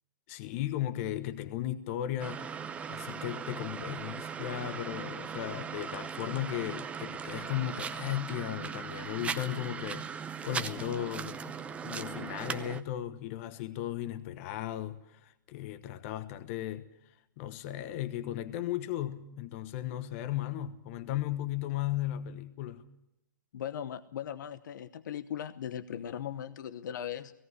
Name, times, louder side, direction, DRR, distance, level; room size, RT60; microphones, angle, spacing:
voice 1, 0.3-2.5 2.9-16.9 17.4-22.8, left 12 dB, 45° left, 1.2 m, -36 dB
sound 1, 2.2-12.8, right 6 dB, 10° right, 0.7 m, -39 dB
voice 2, 23.5-27.3, left 9 dB, 70° left, 1.0 m, -38 dB
17.5 x 17.0 x 9.6 m
hypercardioid pair, 145°, 10 cm